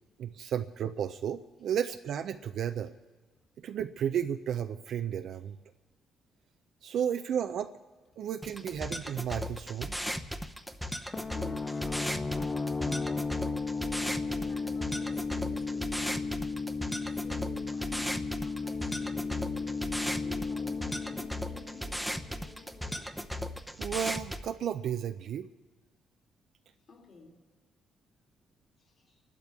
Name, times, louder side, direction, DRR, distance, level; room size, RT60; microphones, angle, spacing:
voice 1, 0.2-2.9 3.6-5.6 6.8-7.7 8.2-9.9 23.8-25.5, right 9 dB, 70° right, 0.4 m, -33 dB
sound 1, 8.4-24.4, equal, ahead, 0.8 m, -37 dB
sound 2, 11.1-22.6, left 4 dB, 30° left, 0.4 m, -35 dB
voice 2, 11.3-16.3 17.0-23.1 26.9-27.4 28.8-29.2, left 3 dB, 50° left, 3.1 m, -51 dB
29.5 x 12.0 x 3.6 m
cardioid pair, 90°, 0 cm